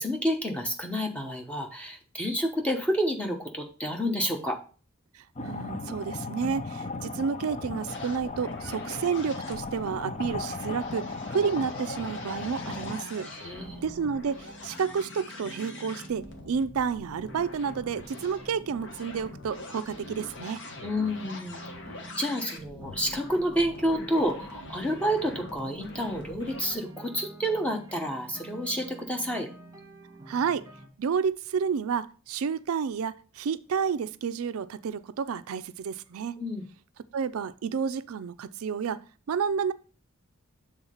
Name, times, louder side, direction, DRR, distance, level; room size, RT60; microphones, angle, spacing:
voice 1, 0.0-4.6 13.2-13.8 20.8-21.6 22.2-29.5 36.4-36.7, equal, 5° left, 0.9 m, -29 dB
voice 2, 5.1-13.3 13.8-20.6 30.3-30.7 31.0-36.4 37.1-39.7, right 6 dB, 80° right, 0.4 m, -30 dB
sound 1, 5.4-13.0, left 3 dB, 30° left, 0.5 m, -36 dB
sound 2, 7.9-26.7, left 2 dB, 55° left, 1.2 m, -44 dB
sound 3, 13.4-30.9, right 2 dB, 15° right, 1.4 m, -48 dB
7.1 x 3.7 x 5.5 m
head